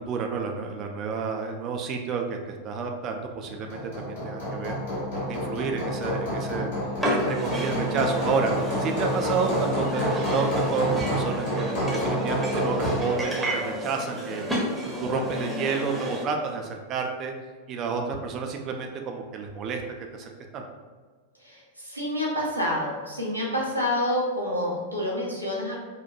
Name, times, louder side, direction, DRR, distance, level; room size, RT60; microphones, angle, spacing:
voice 1, 0.0-4.8 5.3-6.7 7.1-14.4 14.8-17.3 17.7-19.8 20.1-20.7, right 5 dB, 35° right, 3 dB, 0.3 m, -30 dB
Hammer, 3.5-13.1, equal, 60° left, 1.4 m, -29 dB
sound 1, 7.0-16.2, equal, 5° right, 0.8 m, -31 dB
voice 2, 21.4-25.7, left 1 dB, 90° left, -4 dB, 0.8 m, -28 dB
4.2 x 2.1 x 2.5 m, 1.5 s
figure-of-eight pair, 90°, 0 cm